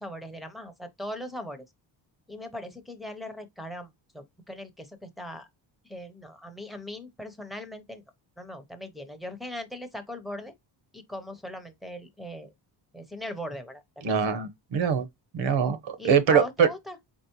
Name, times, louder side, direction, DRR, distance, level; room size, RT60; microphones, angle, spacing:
voice 1, 0.0-1.6 2.3-5.5 5.8-8.0 8.4-10.5 10.9-12.5 12.9-13.8 14.1-14.2 16.0-17.0, left 1 dB, ahead, 0.6 m, -39 dB
voice 2, 14.0-15.0 15.3-16.7, right 7 dB, 80° right, 1.0 m, -23 dB
4.5 x 2.9 x 2.9 m
cardioid pair, 165°, 45 cm